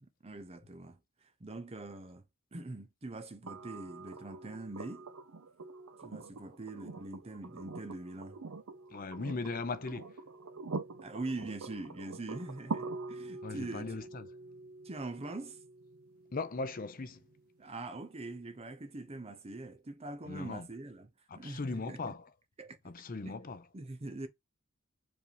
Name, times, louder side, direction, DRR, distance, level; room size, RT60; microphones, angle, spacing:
voice 1, 0.0-1.0 1.4-2.2 2.5-5.1 6.0-8.4 11.0-14.0 14.8-15.6 17.6-21.1 21.3-22.1 22.6-22.8 23.3-23.4 23.7-24.3, right 2 dB, 30° right, 0.7 m, -43 dB
sound 1, 3.5-17.4 19.1-19.2, right 3 dB, 80° right, 0.7 m, -45 dB
voice 2, 8.9-10.2 13.4-14.3 16.3-17.2 20.3-20.7 21.3-22.3 22.8-23.7, left 3 dB, 40° left, 0.6 m, -38 dB
4.9 x 2.6 x 3.3 m
head